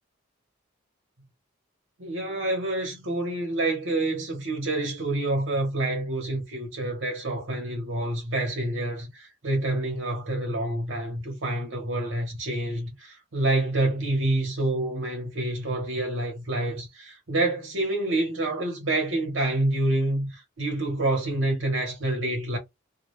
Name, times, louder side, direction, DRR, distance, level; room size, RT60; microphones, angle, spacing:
voice 1, 2.0-22.6, right 2 dB, 70° right, 1.0 m, -27 dB
2.3 x 2.3 x 3.0 m
head